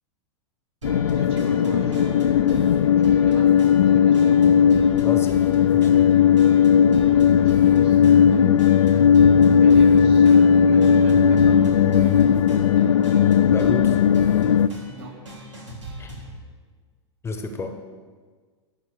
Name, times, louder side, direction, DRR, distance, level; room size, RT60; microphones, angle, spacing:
sound 1, 0.8-14.7, left 7 dB, 80° left, 0.5 m, -16 dB
sound 2, 0.8-16.4, equal, 90° right, 3.0 m, -39 dB
voice 1, 1.1-4.3 7.1-8.0 9.6-12.1 14.9-15.1, right 1 dB, 60° right, -1 dB, 3.0 m, -38 dB
voice 2, 5.0-5.5 5.7-6.1 13.5-14.0 16.0-16.1 17.2-17.8, left 3 dB, 15° left, 6 dB, 0.9 m, -31 dB
12.5 x 4.4 x 8.4 m, 1.5 s
hypercardioid pair, 105°, 15 cm